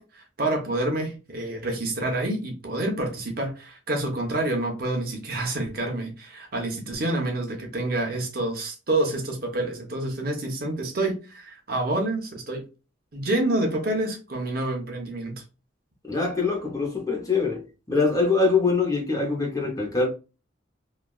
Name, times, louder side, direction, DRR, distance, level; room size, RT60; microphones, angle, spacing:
voice 1, 0.0-12.6 13.1-15.4, right 2 dB, 50° right, 0.8 m, -28 dB
voice 2, 16.1-20.1, left 4 dB, 15° left, 0.7 m, -24 dB
3.2 x 2.3 x 2.3 m
head